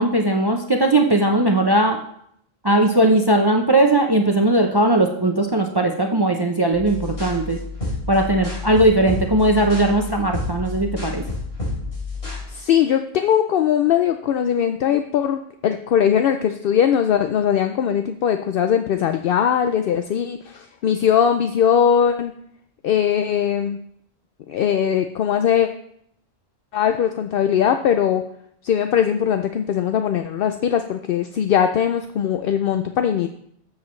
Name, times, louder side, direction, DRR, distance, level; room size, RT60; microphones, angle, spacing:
voice 1, 0.0-2.0 2.6-7.6 8.1-11.2, right 1 dB, 25° right, 3 dB, 0.6 m, -18 dB
sound 1, 6.7-12.4, left 3 dB, 85° left, 4.0 m, -29 dB
voice 2, 12.5-22.3 22.8-23.8 24.5-25.7 26.7-28.2 28.6-33.3, left 8 dB, 65° left, 7 dB, 0.7 m, -20 dB
13.0 x 7.3 x 3.2 m, 0.71 s
omnidirectional pair, 1.0 m